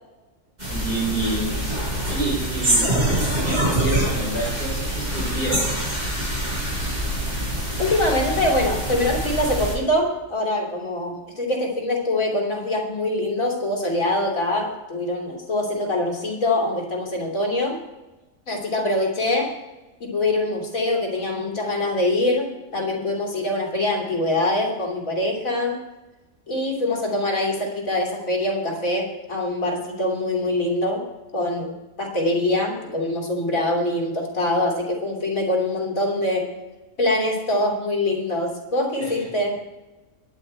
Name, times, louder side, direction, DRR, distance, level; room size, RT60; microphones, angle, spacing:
sound 1, 0.6-9.7, right 1 dB, 30° right, 5.4 m, -25 dB
voice 1, 0.7-1.5 2.1-2.9 3.4-5.7 39.0-39.1, right 2 dB, 40° left, -5 dB, 5.4 m, -28 dB
voice 2, 7.8-17.8 18.5-19.6 20.0-25.8 26.5-31.0 31.3-31.7 32.0-36.5 37.0-39.6, left 1 dB, 85° left, -1 dB, 3.3 m, -24 dB
22.0 x 8.8 x 4.4 m, 1.1 s
omnidirectional pair, 1.4 m